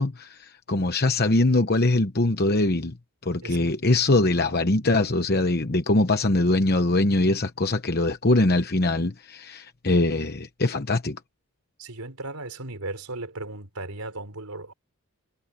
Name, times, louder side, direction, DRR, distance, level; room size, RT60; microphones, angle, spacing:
voice 1, 0.0-2.9 3.2-11.2, left 2 dB, 45° left, 1.0 m, -22 dB
voice 2, 11.8-14.7, right 2 dB, 80° right, 4.4 m, -36 dB
head